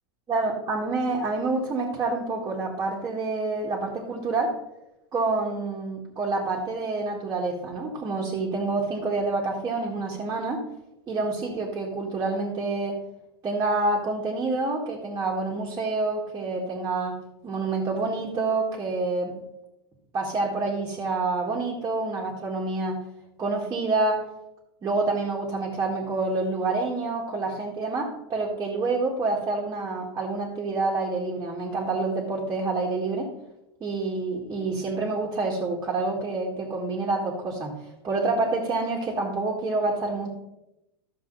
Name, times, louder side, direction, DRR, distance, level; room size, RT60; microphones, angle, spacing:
voice 1, 0.3-4.6 5.1-10.6 11.1-13.0 13.4-17.2 17.4-19.3 20.1-23.0 23.4-24.3 24.8-33.3 33.8-37.7 38.0-40.3, right 3 dB, 20° right, -4 dB, 1.8 m, -27 dB
12.5 x 7.0 x 4.0 m, 0.88 s
supercardioid pair, 145°, 14 cm